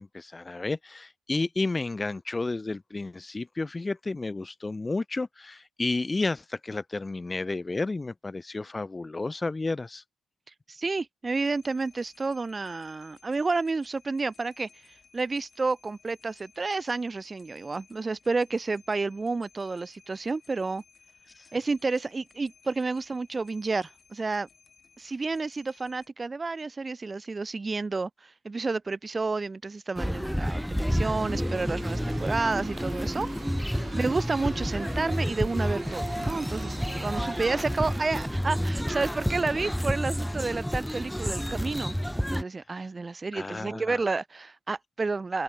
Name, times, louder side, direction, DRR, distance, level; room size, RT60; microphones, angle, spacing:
voice 1, 0.0-10.0 21.4-21.5 33.8-33.9 43.3-44.0, left 3 dB, 20° left, 0.4 m, -32 dB
voice 2, 10.7-14.7 15.1-20.8 21.5-24.5 25.0-33.3 33.9-42.0 42.3-45.4, right 3 dB, 25° right, 0.7 m, -30 dB
sound 1, 11.3-26.1, left 5 dB, 40° left, 7.9 m, -59 dB
sound 2, 30.0-42.4, equal, ahead, 0.9 m, -30 dB
sound 3, 31.1-38.2, right 8 dB, 60° right, 0.9 m, -45 dB
cardioid pair, 90°, 0 cm